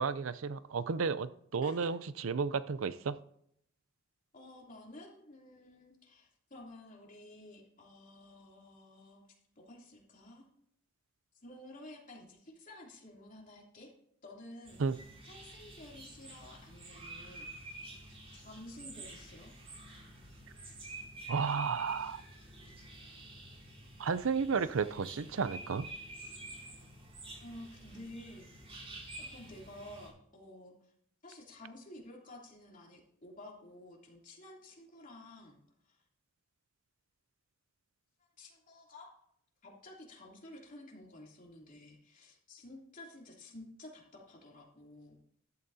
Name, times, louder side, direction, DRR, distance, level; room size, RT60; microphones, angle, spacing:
voice 1, 0.0-2.0 2.2-3.2 14.8-15.0 21.3-22.2 24.0-25.9, right 5 dB, 70° right, 15 dB, 0.5 m, -32 dB
voice 2, 4.3-9.2 9.5-10.5 11.4-13.9 14.2-17.5 18.3-19.5 27.4-28.7 29.2-30.9 31.2-35.6 35.8-36.0 38.2-39.1 39.6-45.2, left 1 dB, 40° left, -2 dB, 3.0 m, -52 dB
sound 1, 14.6-30.1, right 2 dB, 30° right, 4.8 m, -49 dB
14.0 x 12.5 x 2.8 m, 0.71 s
head